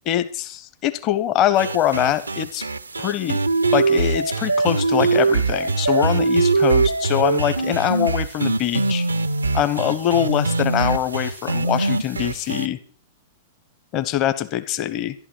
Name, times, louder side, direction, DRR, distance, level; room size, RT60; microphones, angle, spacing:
voice 1, 0.1-2.7 3.0-3.4 3.7-9.1 9.5-12.8 13.9-15.1, left 11 dB, 35° left, 12 dB, 1.0 m, -23 dB
sound 1, 1.6-12.7, right 3 dB, 80° right, 0.5 m, -22 dB
12.5 x 11.5 x 6.1 m, 0.42 s
figure-of-eight pair, 100°, 0 cm